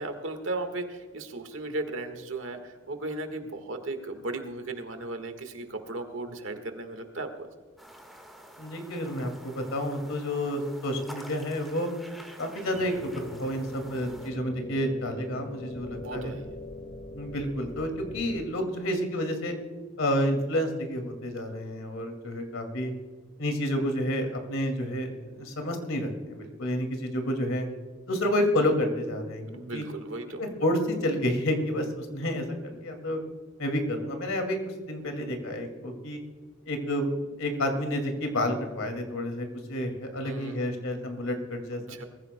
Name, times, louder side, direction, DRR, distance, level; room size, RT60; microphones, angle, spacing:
voice 1, 0.0-7.5 15.9-16.5 29.5-30.4 40.2-40.7 41.9-42.1, right 2 dB, 65° right, 7 dB, 1.6 m, -36 dB
sound 1, 7.8-14.3, equal, ahead, 1.6 m, -48 dB
voice 2, 8.6-11.9 12.4-16.3 17.1-19.6 20.0-22.9 23.4-27.7 28.1-29.5 29.7-29.8 30.4-33.2 33.6-34.6 34.9-36.2 36.7-37.1 37.4-41.8, left 1 dB, 80° left, 5 dB, 2.4 m, -30 dB
sound 2, 12.7-18.4, left 1 dB, 60° left, 1.3 m, -43 dB
21.5 x 15.0 x 2.2 m, 1.5 s
head